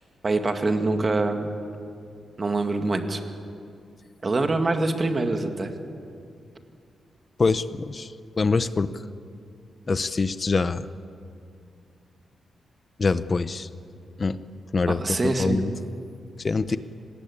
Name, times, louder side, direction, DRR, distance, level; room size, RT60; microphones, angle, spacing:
voice 1, 0.2-1.5 2.4-3.2 4.2-5.7 14.9-15.6, right 2 dB, 30° right, 5 dB, 2.0 m, -24 dB
voice 2, 7.4-8.9 9.9-10.9 13.0-13.7 14.2-14.4 14.7-15.7 16.4-16.8, left 4 dB, 30° left, 13 dB, 0.7 m, -24 dB
26.0 x 19.5 x 8.6 m, 2.4 s
wide cardioid pair, 130°, 0 cm